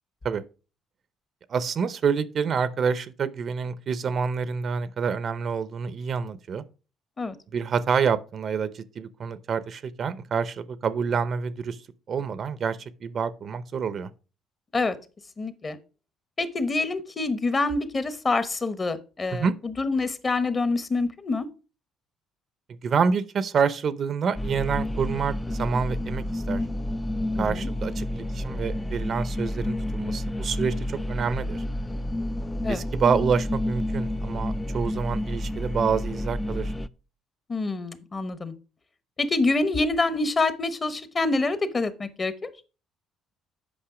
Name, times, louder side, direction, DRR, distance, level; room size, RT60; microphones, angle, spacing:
voice 1, 1.5-6.6 7.5-11.8 12.1-14.1 19.3-19.5 22.8-26.6 27.4-31.6 32.7-36.7, right 6 dB, 45° right, 0.6 m, -27 dB
voice 2, 15.4-15.8 16.4-21.5 27.4-27.7 32.6-32.8 37.5-38.5 39.2-42.3, left 3 dB, 25° left, 0.9 m, -26 dB
sound 1, 24.4-36.9, left 1 dB, 10° left, 0.4 m, -30 dB
8.7 x 5.4 x 4.9 m
cardioid pair, 125°, 0 cm